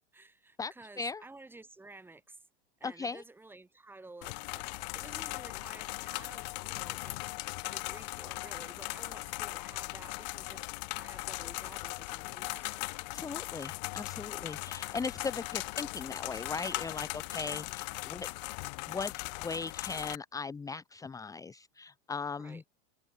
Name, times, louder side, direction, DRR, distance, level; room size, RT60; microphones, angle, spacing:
voice 1, 0.0-2.4 2.8-10.7 11.0-12.6 22.4-22.6, right 2 dB, 5° right, 2.3 m, -52 dB
voice 2, 0.6-1.2 2.8-3.2 13.1-18.3 18.9-22.6, left 4 dB, 10° left, 1.4 m, -38 dB
sound 1, 4.2-20.2, left 27 dB, 40° left, 0.4 m, -39 dB
supercardioid pair, 150°, 35 cm